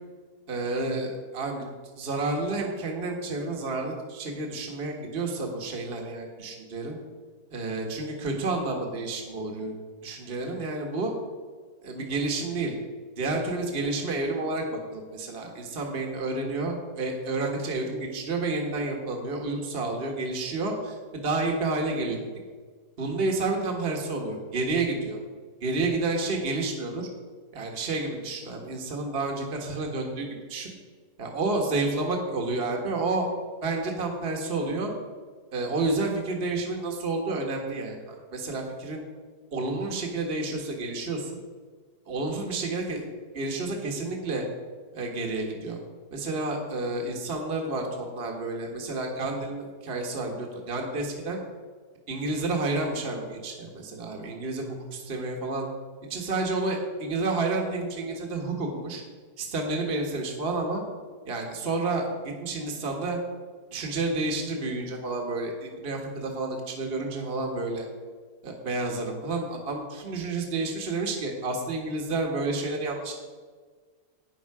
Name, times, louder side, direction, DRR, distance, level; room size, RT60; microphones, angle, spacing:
voice 1, 0.5-1.7 2.0-7.0 7.5-9.7 10.0-11.1 11.8-12.7 13.2-22.3 23.0-25.2 25.6-27.1 27.5-30.7 31.2-33.3 33.6-34.9 35.5-39.0 39.5-41.3 42.1-43.1 43.3-44.4 44.9-45.8 46.1-51.4 52.1-55.7 56.1-59.0 59.4-60.8 61.2-62.1 62.4-63.2 63.7-67.9 68.4-73.1, right 2 dB, 35° right, 1 dB, 1.7 m, -30 dB
12.5 x 9.4 x 4.9 m, 1.5 s
omnidirectional pair, 1.8 m